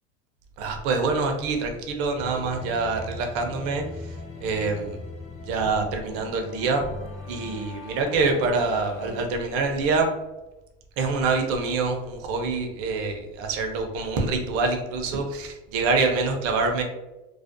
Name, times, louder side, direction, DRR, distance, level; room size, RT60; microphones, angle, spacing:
voice 1, 0.6-3.8 4.4-5.0 5.5-6.8 7.3-10.1 11.0-16.8, right 4 dB, 55° right, 4 dB, 0.5 m, -25 dB
sound 1, 2.2-9.3, left 2 dB, 25° left, 0.4 m, -40 dB
2.4 x 2.1 x 2.5 m, 1.0 s
supercardioid pair, 130°, 29 cm